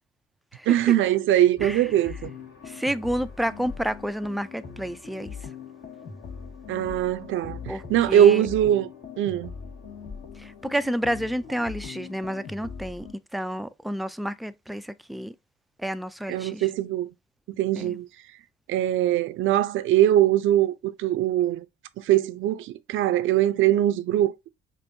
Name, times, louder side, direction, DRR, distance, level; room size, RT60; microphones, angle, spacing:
voice 1, 0.7-2.3 6.7-8.9 9.2-9.5 16.3-17.1 17.6-18.1 18.7-21.6 22.0-24.5, right 12 dB, 80° right, 0.5 m, -22 dB
sound 1, 1.6-13.1, left 6 dB, 60° left, 1.8 m, -41 dB
voice 2, 2.7-5.4 7.7-8.5 10.4-15.3 15.8-16.7 17.8-18.0, equal, ahead, 0.3 m, -30 dB
5.3 x 2.6 x 2.6 m
cardioid pair, 90°, 20 cm